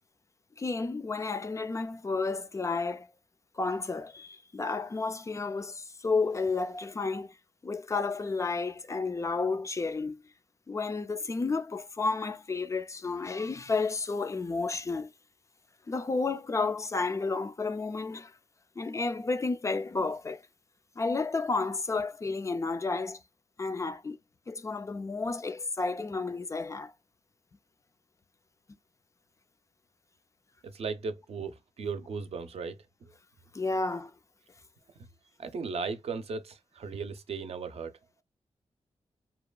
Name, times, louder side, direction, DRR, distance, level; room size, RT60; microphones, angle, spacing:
voice 1, 0.6-3.1 3.6-7.3 7.6-10.2 10.7-15.1 15.9-18.3 18.8-20.4 21.0-23.2 23.6-24.2 24.5-26.9 33.5-34.1, left 3 dB, 30° left, 0.3 m, -31 dB
voice 2, 30.6-33.1 35.4-38.0, right 5 dB, 70° right, 0.5 m, -37 dB
2.8 x 2.2 x 2.3 m
wide cardioid pair, 90°, 11 cm